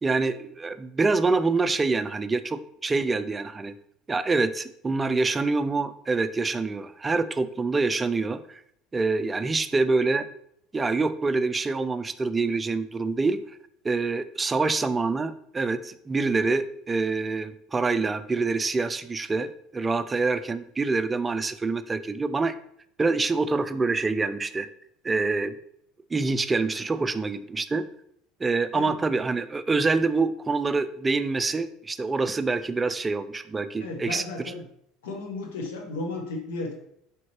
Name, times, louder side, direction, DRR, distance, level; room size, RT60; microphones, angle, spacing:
voice 1, 0.0-3.7 4.1-8.6 8.9-10.3 10.7-13.4 13.8-22.5 23.0-24.7 25.0-25.6 26.1-27.8 28.4-34.5, right 3 dB, 20° right, 12 dB, 0.3 m, -26 dB
voice 2, 33.8-34.7 35.0-36.7, left 2 dB, 85° left, 2 dB, 1.0 m, -34 dB
4.2 x 3.6 x 3.0 m, 0.72 s
supercardioid pair, 95°, 0 cm